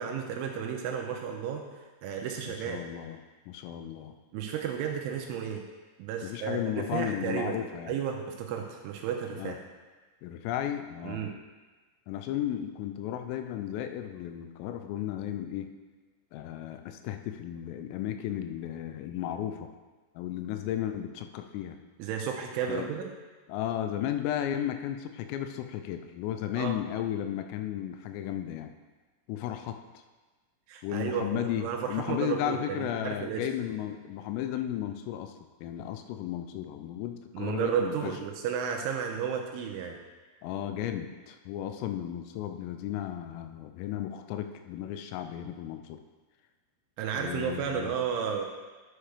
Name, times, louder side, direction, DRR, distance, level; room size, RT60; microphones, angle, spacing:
voice 1, 0.0-2.8 4.3-5.6 6.0-7.6 7.9-9.6 11.0-11.3 22.0-23.1 26.6-26.7 30.7-33.5 37.3-40.0 47.0-48.5, right 7 dB, 85° right, 1 dB, 3.0 m, -33 dB
voice 2, 2.5-4.1 6.2-7.9 9.4-9.6 10.2-11.3 12.1-15.7 16.3-19.7 20.2-21.8 22.7-22.9 23.5-28.7 29.3-30.0 30.8-35.4 35.6-38.1 40.4-46.0 47.2-47.9, left 11 dB, 85° left, 7 dB, 3.2 m, -34 dB
11.0 x 7.9 x 3.3 m, 1.3 s
omnidirectional pair, 5.9 m